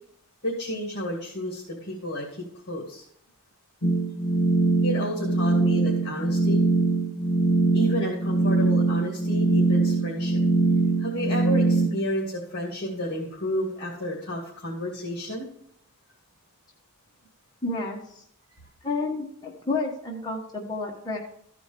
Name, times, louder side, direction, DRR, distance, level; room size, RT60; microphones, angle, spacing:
voice 1, 0.4-2.3 2.7-3.0 4.8-6.6 7.7-10.4 11.0-15.5, equal, 50° left, -3 dB, 2.3 m, -31 dB
sound 1, 3.8-11.9, right 3 dB, 70° left, 1.2 m, -22 dB
voice 2, 17.6-18.2 18.8-21.2, left 3 dB, 20° left, -3 dB, 1.3 m, -30 dB
14.0 x 5.1 x 5.2 m, 0.71 s
head